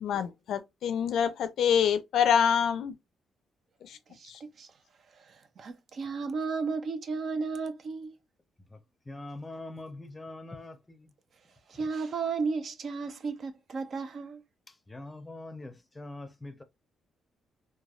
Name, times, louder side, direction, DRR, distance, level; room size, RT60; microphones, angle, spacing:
voice 1, 0.0-2.9 3.8-4.0 4.3-4.4, left 8 dB, 75° left, 0.4 m, -26 dB
voice 2, 4.1-4.7 5.1-8.2 11.7-14.4, right 4 dB, 55° right, 0.5 m, -34 dB
voice 3, 9.1-10.7 14.9-16.6, left 2 dB, 15° left, 0.6 m, -42 dB
3.2 x 2.2 x 2.4 m
cardioid pair, 90°, 0 cm